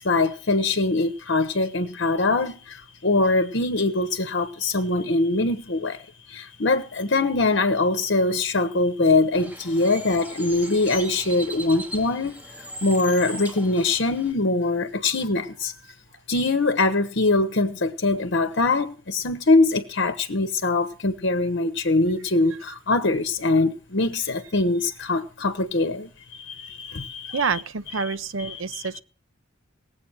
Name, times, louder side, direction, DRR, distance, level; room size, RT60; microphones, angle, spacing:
voice 1, 0.0-2.5 3.0-6.0 6.3-12.3 12.8-15.7 16.3-26.1 26.5-27.4, left 2 dB, 60° left, 1.0 m, -22 dB
Bird, 9.3-14.3, right 1 dB, 10° right, 2.2 m, -38 dB
voice 2, 27.3-29.0, right 5 dB, 75° right, 0.8 m, -28 dB
18.0 x 8.1 x 6.3 m
head